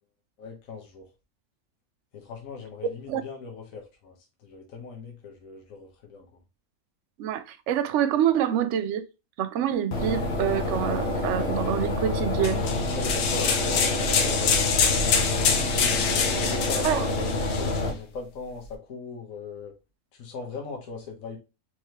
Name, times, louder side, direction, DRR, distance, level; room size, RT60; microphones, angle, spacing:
voice 1, 0.4-1.1 2.1-6.3 12.9-19.7 20.1-21.4, left 4 dB, 65° left, 1.4 m, -39 dB
voice 2, 7.2-9.0 9.4-12.6 16.8-17.0, right 9 dB, 65° right, 0.8 m, -26 dB
sound 1, 9.9-17.9, left 2 dB, 50° left, 1.0 m, -28 dB
sound 2, 12.4-17.8, left 6 dB, 80° left, 1.3 m, -26 dB
4.6 x 3.2 x 2.9 m
omnidirectional pair, 1.6 m